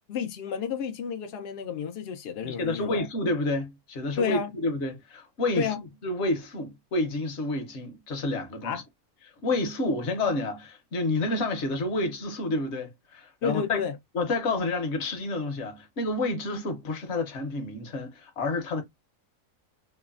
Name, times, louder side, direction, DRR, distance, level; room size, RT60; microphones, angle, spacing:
voice 1, 0.0-3.1 4.2-4.5 5.6-5.8 8.6-8.8 13.4-14.0, left 7 dB, 85° left, 0.5 m, -31 dB
voice 2, 2.4-5.7 6.0-8.8 9.4-13.8 14.1-18.8, left 2 dB, 55° left, 0.9 m, -29 dB
3.0 x 2.0 x 2.3 m
omnidirectional pair, 1.6 m